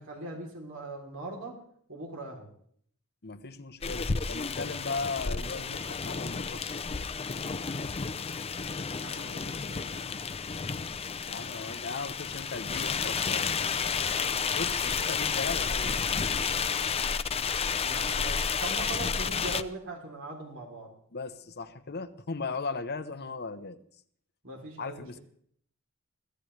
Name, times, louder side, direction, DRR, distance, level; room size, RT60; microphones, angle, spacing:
voice 1, 0.0-1.6 1.9-2.5 9.0-10.1 17.8-20.9 24.4-25.2, right 2 dB, 65° right, 0 dB, 3.5 m, -41 dB
voice 2, 3.2-6.6 11.3-16.1 21.1-23.8 24.8-25.2, left 4 dB, 50° left, 9 dB, 1.0 m, -37 dB
sound 1, 3.8-19.6, left 5 dB, 30° left, 0.6 m, -31 dB
22.0 x 16.5 x 3.3 m, 0.62 s
head